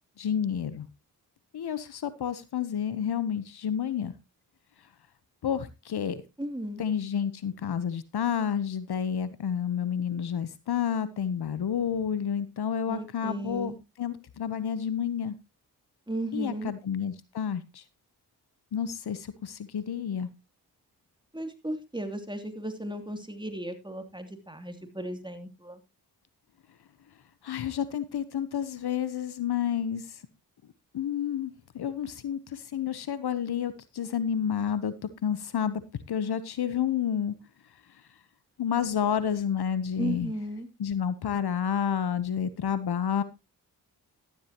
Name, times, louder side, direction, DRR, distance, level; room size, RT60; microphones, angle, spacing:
voice 1, 0.2-0.9 1.5-4.1 5.4-6.2 6.8-15.3 16.3-17.8 18.7-20.3 27.4-30.2 30.9-34.9 35.2-35.8 36.1-37.3 38.6-40.3 40.8-43.2, left 8 dB, 65° left, 15 dB, 1.0 m, -30 dB
voice 2, 6.4-6.8 12.9-13.8 16.1-16.7 21.3-25.8 40.0-40.7, right 1 dB, 10° right, 6 dB, 2.9 m, -35 dB
13.0 x 11.0 x 3.0 m, 0.25 s
supercardioid pair, 45°, 41 cm